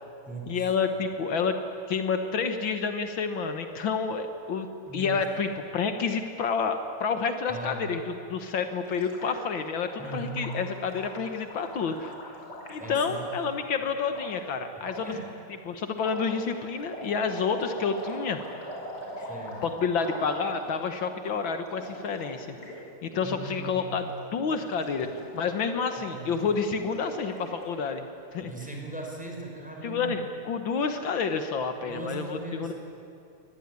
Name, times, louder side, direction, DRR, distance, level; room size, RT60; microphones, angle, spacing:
voice 1, 0.5-1.6 1.9-4.7 4.9-12.1 12.7-15.1 15.6-18.4 19.2-19.3 19.6-22.6 23.0-25.1 25.3-28.0 28.3-28.7 29.8-32.7, left 5 dB, 70° left, 7 dB, 2.0 m, -29 dB
voice 2, 4.9-5.2 7.5-7.8 10.0-10.4 12.8-13.2 15.0-15.2 19.3-19.6 23.2-23.9 26.0-26.3 28.4-30.1 31.8-32.7, right 2 dB, 5° right, -1 dB, 5.1 m, -38 dB
Gurgling, 8.9-13.5 14.1-14.3 14.8-15.2 15.9-20.9 21.1-21.3 21.6-22.8 23.0-23.3 23.6-24.1 24.4-27.8, equal, 55° left, 6.5 m, -42 dB
25.0 x 19.5 x 9.7 m, 2.8 s
omnidirectional pair, 2.2 m